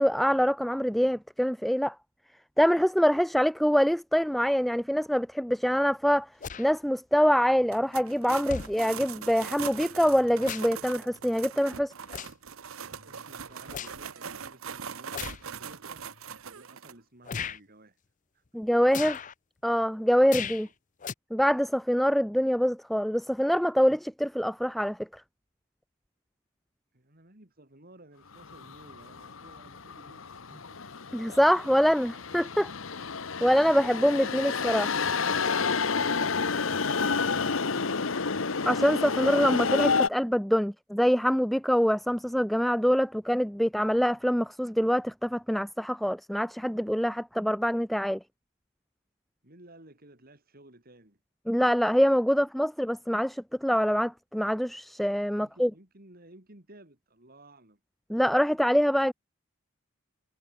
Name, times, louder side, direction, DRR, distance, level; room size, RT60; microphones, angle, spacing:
voice 1, 0.0-2.0 2.6-6.3 6.6-11.9 18.5-19.2 19.6-20.7 21.3-25.2 31.1-32.7 33.4-34.9 38.7-48.2 51.5-55.7 58.1-59.1, equal, ahead, 0.3 m, -25 dB
sound 1, 6.4-6.7 7.7-7.8 8.5-8.7 10.0-10.8 11.2-11.4 12.1-12.5 12.9-14.0 15.1-15.4 16.2-16.3 17.2-17.6 18.9-19.3 20.3-20.7 21.0-21.1, left 7 dB, 40° left, 0.6 m, -37 dB
sound 2, 7.7-16.9, right 7 dB, 90° right, 1.1 m, -41 dB
voice 2, 13.1-18.0 18.3-18.4 20.6-20.7 26.9-30.8 35.9-38.4 49.4-51.2 55.3-57.8, right 1 dB, 45° right, 4.1 m, -54 dB
sound 3, 28.4-40.1, left 5 dB, 70° left, 1.1 m, -30 dB
head